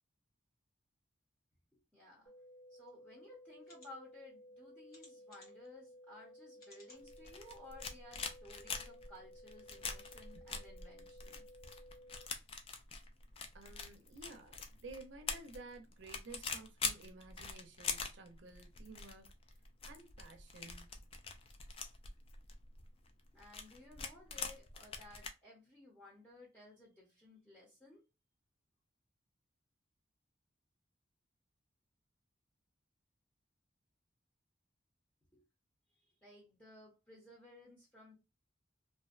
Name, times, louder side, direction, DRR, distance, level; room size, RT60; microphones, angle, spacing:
voice 1, 1.7-2.3 2.7-11.4 23.3-28.0 35.3-35.4 35.9-38.2, left 2 dB, 10° left, 0.7 m, -57 dB
sound 1, 2.3-12.3, equal, 75° left, 1.0 m, -57 dB
sound 2, 2.9-3.0 3.6-3.9 4.9-5.7 6.6-7.0 7.6-7.7 8.0-8.1, left 1 dB, 50° left, 1.2 m, -61 dB
sound 3, 7.0-25.3, left 5 dB, 30° left, 0.3 m, -44 dB
voice 2, 13.5-19.4 19.8-20.9, right 3 dB, 70° right, 0.5 m, -53 dB
2.5 x 2.1 x 2.4 m
head